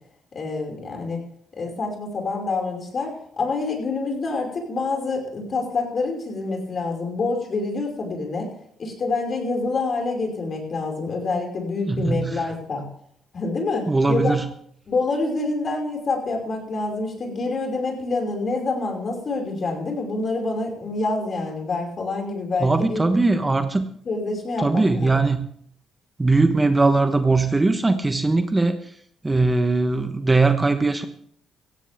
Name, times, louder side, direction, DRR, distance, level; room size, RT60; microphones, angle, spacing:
voice 1, 0.3-1.2 1.6-8.5 8.8-12.9 13.3-14.4 14.9-23.0 24.1-25.3, left 3 dB, 45° left, 2 dB, 5.4 m, -27 dB
voice 2, 11.9-12.5 13.9-14.5 22.6-23.9 24.6-25.5 26.2-28.8 29.2-31.0, right 3 dB, 20° right, 8 dB, 1.1 m, -20 dB
17.0 x 15.5 x 3.6 m, 0.64 s
cardioid pair, 90°, 0 cm